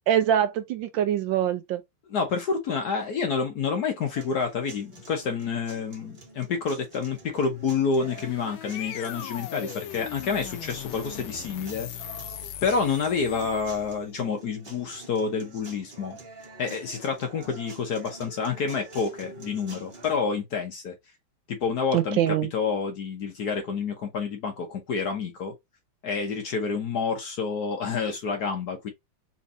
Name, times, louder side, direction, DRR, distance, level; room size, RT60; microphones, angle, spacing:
voice 1, 0.1-1.8 21.9-22.5, right 10 dB, 75° right, 1.2 m, -24 dB
voice 2, 2.1-11.9 12.6-16.2 16.6-20.9 21.5-25.5 26.0-28.9, left 5 dB, 60° left, 1.2 m, -28 dB
sound 1, 4.2-20.2, right 2 dB, 30° right, 1.1 m, -47 dB
sound 2, 7.8-14.1, left 11 dB, 75° left, 1.3 m, -39 dB
4.2 x 3.2 x 2.6 m
omnidirectional pair, 2.3 m